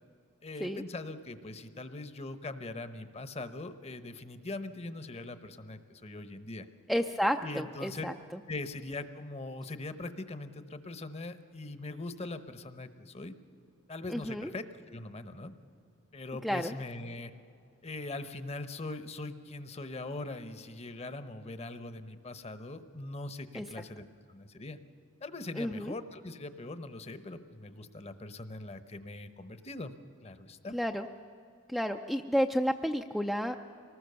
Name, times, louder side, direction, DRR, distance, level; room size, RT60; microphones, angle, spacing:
voice 1, 0.4-6.6 7.4-8.1 8.5-13.3 13.9-15.5 16.1-17.3 17.8-24.8 25.2-29.9 30.2-30.8, left 2 dB, 30° left, 11 dB, 0.9 m, -41 dB
voice 2, 6.9-8.1 14.1-14.5 16.4-16.7 23.5-23.7 25.6-25.9 30.7-31.1 31.7-33.6, equal, ahead, 4 dB, 0.4 m, -31 dB
24.0 x 19.0 x 6.8 m, 2.5 s
head